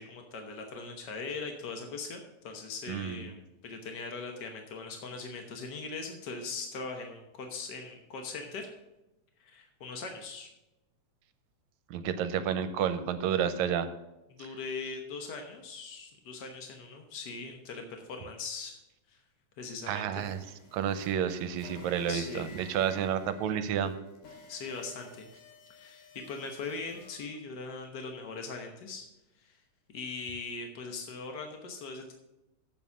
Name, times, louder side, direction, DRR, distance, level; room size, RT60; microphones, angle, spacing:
voice 1, 0.0-8.7 9.4-10.5 14.3-18.8 19.1-19.2 19.6-20.3 22.0-22.4 24.5-25.3 25.7-29.0 29.4-29.6 29.9-32.1, left 4 dB, 65° left, 3 dB, 1.0 m, -40 dB
voice 2, 2.9-3.2 11.9-13.9 19.9-20.4 20.7-24.0, right 8 dB, 75° right, 10 dB, 2.0 m, -30 dB
sound 1, 20.1-27.2, left 3 dB, 80° left, 3.6 m, -53 dB
8.0 x 7.4 x 7.0 m, 0.95 s
omnidirectional pair, 3.4 m